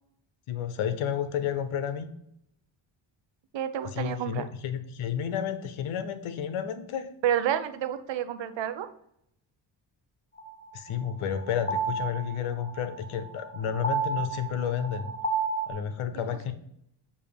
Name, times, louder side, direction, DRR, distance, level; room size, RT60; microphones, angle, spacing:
voice 1, 0.5-2.1 3.8-7.1 10.7-15.1 15.7-16.5, left 8 dB, 85° left, 10 dB, 0.8 m, -31 dB
voice 2, 3.5-4.5 7.2-8.9, right 10 dB, 65° right, 11 dB, 0.7 m, -29 dB
sound 1, 10.4-15.7, right 4 dB, 15° left, 1.0 m, -32 dB
6.9 x 2.8 x 5.0 m, 0.74 s
cardioid pair, 80°, 48 cm